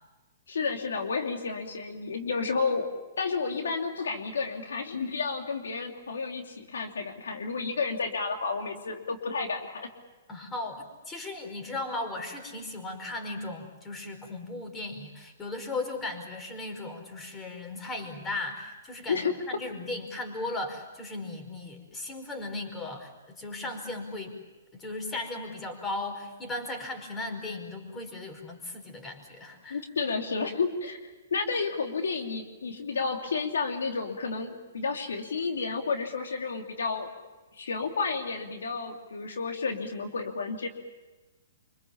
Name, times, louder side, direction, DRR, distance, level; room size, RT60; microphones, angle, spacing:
voice 1, 0.5-2.9 3.2-9.9 19.1-19.4 29.7-37.1 37.5-40.7, left 4 dB, 80° left, 3 dB, 2.9 m, -31 dB
voice 2, 10.3-24.4 24.7-29.8, left 2 dB, 15° left, 4 dB, 5.0 m, -37 dB
26.0 x 25.5 x 7.2 m, 1.2 s
hypercardioid pair, 130°, 0 cm